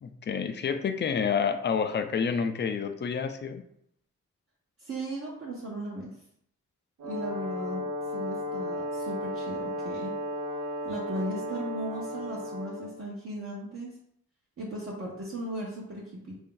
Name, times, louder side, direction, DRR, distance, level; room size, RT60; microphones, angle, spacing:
voice 1, 0.0-3.6, left 6 dB, 35° left, 8 dB, 0.4 m, -29 dB
voice 2, 4.8-6.2 7.0-7.8 8.1-10.1 10.8-13.9 14.6-16.4, right 1 dB, 45° right, -5 dB, 0.8 m, -37 dB
Brass instrument, 7.0-13.0, left 1 dB, 75° right, 0.7 m, -34 dB
3.3 x 2.6 x 3.7 m, 0.71 s
wide cardioid pair, 110°, 31 cm